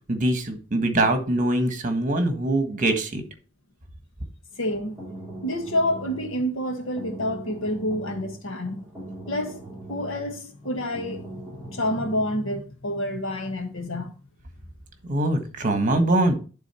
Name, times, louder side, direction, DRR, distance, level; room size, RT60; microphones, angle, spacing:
voice 1, 0.1-3.2 15.1-16.4, right 1 dB, 40° right, 1.5 m, -23 dB
sound 1, 4.5-12.4, right 2 dB, 5° right, 3.1 m, -41 dB
voice 2, 4.6-5.1 5.4-8.9 9.3-9.6 9.9-11.3 11.6-14.1, left 1 dB, 90° left, 1.6 m, -28 dB
11.5 x 3.8 x 4.4 m
head